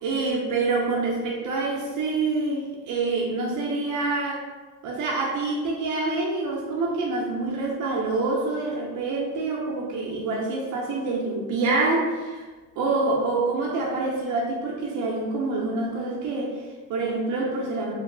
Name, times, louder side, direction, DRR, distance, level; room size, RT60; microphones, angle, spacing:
voice 1, 0.0-4.4 4.8-12.5 12.8-17.9, right 3 dB, 80° right, -3 dB, 0.5 m, -26 dB
2.2 x 2.0 x 3.1 m, 1.3 s
cardioid pair, 90°, 30 cm